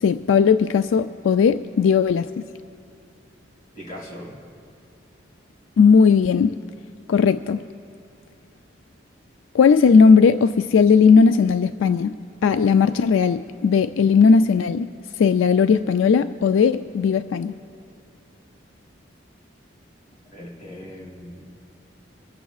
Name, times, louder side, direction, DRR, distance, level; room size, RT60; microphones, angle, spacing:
voice 1, 0.0-2.3 5.8-6.6 7.1-7.6 9.5-12.2 12.4-14.9 15.2-17.6, left 5 dB, 85° left, 10 dB, 0.3 m, -17 dB
voice 2, 3.7-4.4 20.2-21.7, equal, 40° left, -3 dB, 2.9 m, -39 dB
25.0 x 14.0 x 2.4 m, 2.6 s
head